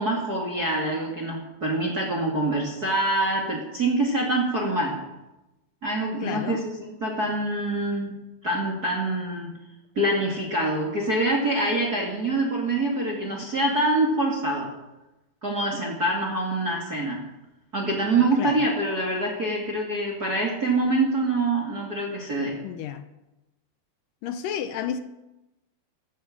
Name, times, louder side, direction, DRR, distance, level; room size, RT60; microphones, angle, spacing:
voice 1, 0.0-5.0 5.8-6.7 7.0-8.2 8.4-9.5 10.0-14.7 15.4-17.2 17.7-22.6, right 2 dB, 30° right, 2.2 m, -25 dB
voice 2, 6.2-6.6 18.2-18.7 22.6-23.1 24.2-25.0, left 9 dB, 80° left, 2.0 m, -31 dB
14.0 x 14.0 x 7.3 m
omnidirectional pair, 4.8 m